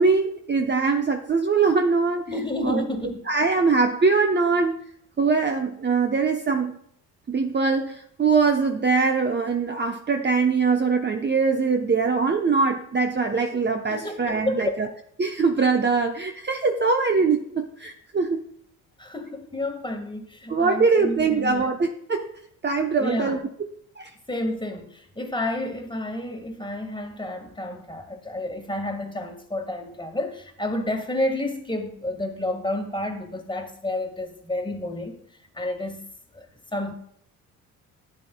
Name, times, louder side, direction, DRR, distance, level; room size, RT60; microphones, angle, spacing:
voice 1, 0.0-2.2 2.6-2.8 3.3-4.8 5.2-6.7 7.3-14.9 15.2-18.4 20.5-22.3 22.6-23.4 24.0-24.1, right 4 dB, 25° right, 0.9 m, -22 dB
voice 2, 2.3-3.2 13.9-14.8 19.0-21.7 23.0-23.4 24.3-35.2 35.6-36.0 36.3-36.5 36.7-36.9, left 1 dB, 10° left, 1.7 m, -30 dB
12.5 x 8.8 x 2.3 m
hypercardioid pair, 55°, 42 cm